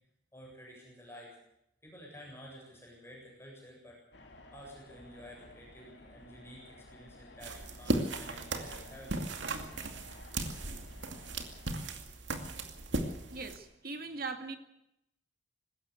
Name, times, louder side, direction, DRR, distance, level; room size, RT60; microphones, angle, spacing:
voice 1, 0.3-1.4 1.8-4.0 4.5-9.3, equal, 15° left, -2 dB, 7.9 m, -51 dB
sound 1, 4.1-11.9, left 2 dB, 65° left, 3.1 m, -55 dB
sound 2, 7.4-13.6, right 2 dB, 75° right, 2.4 m, -37 dB
voice 2, 13.3-14.6, right 3 dB, 50° right, 6 dB, 2.3 m, -40 dB
20.0 x 16.5 x 8.2 m, 0.82 s
head